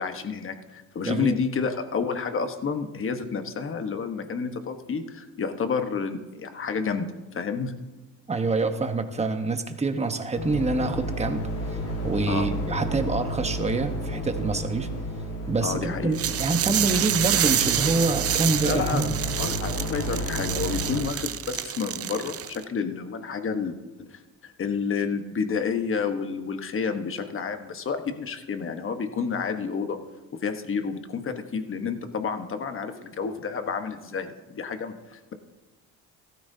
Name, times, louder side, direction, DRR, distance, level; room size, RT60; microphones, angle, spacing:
voice 1, 0.0-7.1 7.3-7.7 12.3-12.5 15.6-16.2 18.6-30.0 30.3-35.3, left 5 dB, 40° left, 7 dB, 1.2 m, -30 dB
voice 2, 1.1-1.4 8.3-11.8 12.0-14.9 15.5-19.2, right 3 dB, 20° right, 7 dB, 1.1 m, -26 dB
sound 1, 10.3-21.0, equal, 75° left, 4.7 m, -32 dB
sound 2, 16.1-22.6, right 11 dB, 45° right, 0.6 m, -28 dB
15.0 x 13.5 x 2.8 m, 1.1 s
cardioid pair, 95°, 33 cm